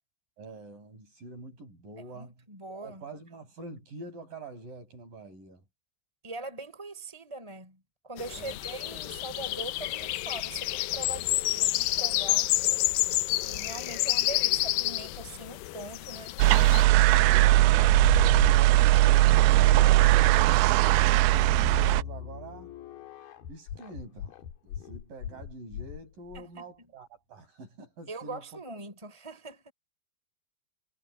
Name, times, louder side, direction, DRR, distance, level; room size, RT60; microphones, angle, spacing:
voice 1, 0.4-2.3 2.7-5.6 8.4-8.6 17.1-17.7 18.2-22.7 23.5-24.4 24.6-28.6, right 3 dB, 55° right, 9.1 m, -46 dB
voice 2, 2.1-3.0 6.2-12.5 13.4-16.4 26.3-26.9 28.1-29.7, right 2 dB, 5° right, 4.7 m, -42 dB
sound 1, 8.2-16.8, left 17 dB, 85° left, 2.0 m, -29 dB
sound 2, 16.4-22.0, right 18 dB, 80° right, 2.5 m, -20 dB
sound 3, 17.6-19.0 19.5-26.4, left 9 dB, 65° left, 3.3 m, -38 dB
omnidirectional pair, 4.8 m